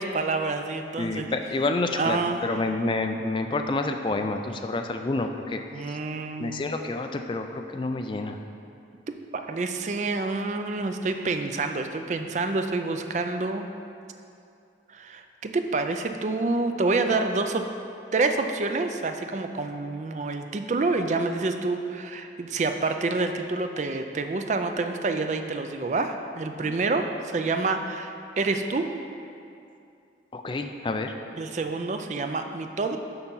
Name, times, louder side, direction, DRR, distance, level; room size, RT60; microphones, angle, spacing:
voice 1, 0.0-1.3 1.9-2.6 5.7-6.7 9.3-13.7 14.9-17.6 18.1-28.9 31.3-33.0, right 3 dB, 40° right, 6 dB, 0.4 m, -28 dB
voice 2, 1.0-6.0 6.4-8.4 26.6-26.7 30.3-31.1, left 2 dB, 30° left, 6 dB, 0.3 m, -29 dB
6.7 x 5.8 x 5.5 m, 2.5 s
head